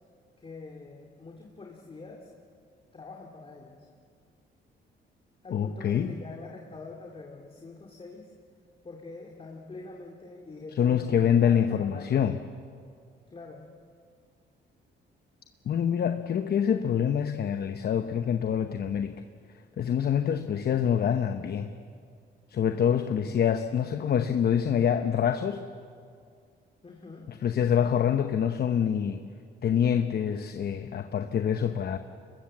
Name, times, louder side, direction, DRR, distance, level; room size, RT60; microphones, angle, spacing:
voice 1, 0.4-2.3 2.9-3.9 5.4-8.3 8.8-12.3 13.3-13.7 26.8-27.3, left 3 dB, 30° left, 0 dB, 2.5 m, -45 dB
voice 2, 5.5-6.1 10.8-12.3 15.7-19.2 19.8-21.7 22.5-25.6 27.3-29.2 29.6-32.0, left 8 dB, 55° left, 8 dB, 1.0 m, -26 dB
23.5 x 21.0 x 7.5 m, 2.2 s
cardioid pair, 90°, 20 cm